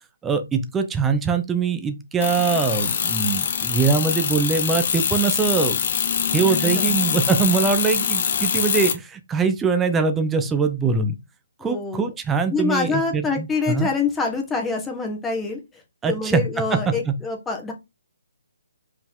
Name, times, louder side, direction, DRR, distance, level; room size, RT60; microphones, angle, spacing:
voice 1, 0.2-5.8 6.3-11.1 11.6-13.9 16.0-16.4 16.7-16.8 17.1-17.2, right 5 dB, 10° right, 0.9 m, -22 dB
sound 1, 2.2-8.9, left 7 dB, 50° left, 1.3 m, -23 dB
voice 2, 6.4-7.0 11.6-12.0 12.5-15.6 16.0-17.7, left 4 dB, 10° left, 1.6 m, -26 dB
5.4 x 4.9 x 3.8 m
hypercardioid pair, 150°, 0 cm